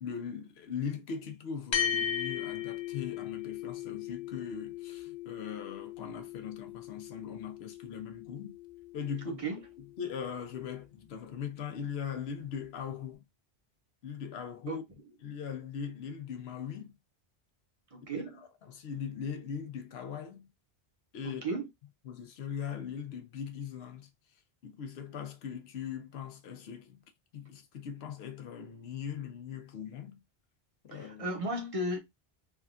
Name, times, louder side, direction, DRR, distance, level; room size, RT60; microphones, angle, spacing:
voice 1, 0.0-8.6 8.9-9.4 9.8-13.2 14.0-14.8 15.2-17.0 18.1-20.5 21.1-21.6 22.0-27.0 27.3-30.2 30.8-31.3, left 7 dB, 80° left, 0.9 m, -40 dB
sound 1, 1.7-10.4, left 9 dB, 35° left, 0.5 m, -38 dB
voice 2, 9.3-9.6 14.7-14.8 17.9-18.4 21.2-21.7 30.9-32.0, right 1 dB, 40° right, 0.7 m, -35 dB
3.4 x 2.2 x 2.4 m
omnidirectional pair, 1.0 m